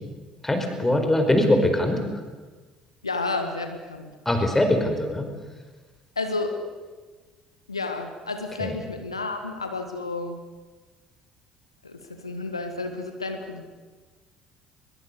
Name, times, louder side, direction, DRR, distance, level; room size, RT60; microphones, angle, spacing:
voice 1, 0.4-2.0 4.2-5.3 8.6-8.7, left 1 dB, 10° left, 5 dB, 5.0 m, -22 dB
voice 2, 3.0-4.1 6.1-6.6 7.7-10.4 11.8-13.7, left 3 dB, 85° left, 6 dB, 1.6 m, -31 dB
22.5 x 22.0 x 8.2 m, 1.3 s
figure-of-eight pair, 55°, 3 cm